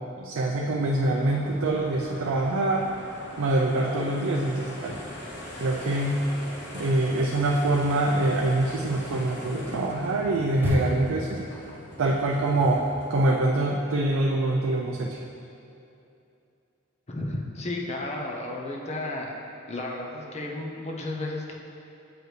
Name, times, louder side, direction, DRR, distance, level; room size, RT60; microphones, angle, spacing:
voice 1, 0.2-2.9 3.4-5.0 5.6-6.2 6.7-11.4 12.0-15.2, right 2 dB, 85° right, -1 dB, 0.4 m, -25 dB
sound 1, 0.8-13.4, equal, 60° left, 0.9 m, -41 dB
sound 2, 4.8-5.9 6.2-11.3, equal, 10° right, 0.7 m, -36 dB
voice 2, 17.1-19.3 19.7-21.5, left 2 dB, 35° left, 0 dB, 0.6 m, -33 dB
7.9 x 4.6 x 3.2 m, 2.7 s
head